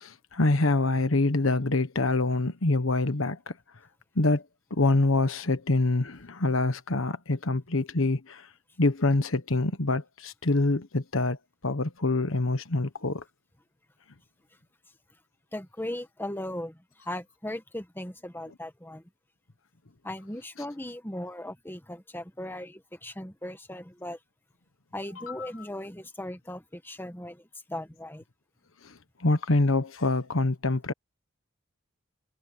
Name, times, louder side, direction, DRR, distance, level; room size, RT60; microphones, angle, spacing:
voice 1, 0.0-3.5 4.1-4.4 4.7-8.5 8.8-11.4 11.6-13.2 25.3-25.5 28.8-28.9 29.2-30.9, left 2 dB, 75° left, 1.3 m, -25 dB
voice 2, 15.5-16.8 17.1-19.0 20.0-24.2 24.9-27.4 27.7-28.2, left 1 dB, 10° left, 1.7 m, -38 dB
head